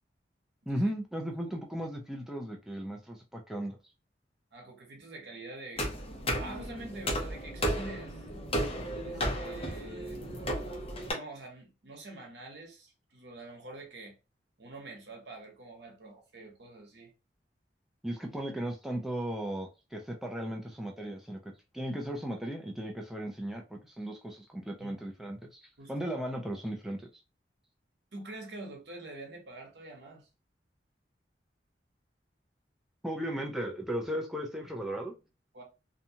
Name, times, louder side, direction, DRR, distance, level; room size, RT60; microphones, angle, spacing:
voice 1, 0.7-3.8 18.0-25.6 25.9-27.1 33.0-35.1, right 1 dB, ahead, 0.4 m, -36 dB
voice 2, 4.5-5.9 6.4-8.2 9.0-10.2 11.0-14.1 14.6-17.1 24.8-25.0 25.8-26.1 28.1-30.3 35.5-35.6, right 2 dB, 70° right, 1.0 m, -46 dB
sound 1, 5.8-11.1, equal, 35° left, 0.8 m, -34 dB
2.7 x 2.2 x 2.7 m
head